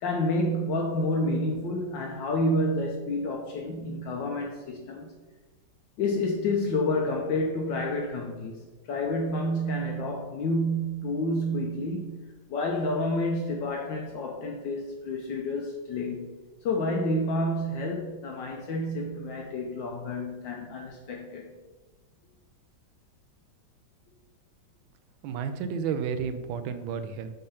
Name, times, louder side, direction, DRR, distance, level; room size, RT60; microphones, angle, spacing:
voice 1, 0.0-5.1 6.0-8.5 8.9-12.2 12.5-16.3 16.6-21.5, left 1 dB, 70° left, 1 dB, 1.3 m, -29 dB
voice 2, 25.2-27.3, right 6 dB, 75° right, 10 dB, 1.3 m, -31 dB
5.6 x 3.8 x 5.6 m, 1.2 s
omnidirectional pair, 2.3 m